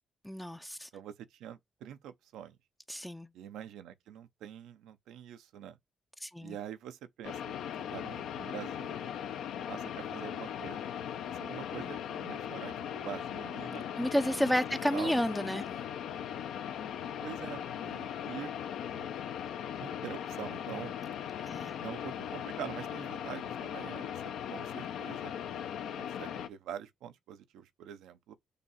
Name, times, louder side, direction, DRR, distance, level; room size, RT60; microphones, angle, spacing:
voice 1, 0.2-0.9 2.9-3.3 6.2-6.6 14.0-15.7 21.5-21.8, equal, 5° left, 0.5 m, -31 dB
voice 2, 1.4-2.6 3.3-5.8 6.4-7.6 7.9-9.0 9.7-10.8 11.3-13.9 14.2-14.6 14.9-15.1 17.2-18.6 18.9-19.1 19.8-21.0 21.8-24.1 24.5-25.3 26.0-28.3, right 10 dB, 85° right, 0.7 m, -45 dB
sound 1, 7.2-26.5, left 9 dB, 80° left, 0.7 m, -39 dB
6.8 x 2.8 x 5.6 m
cardioid pair, 90°, 0 cm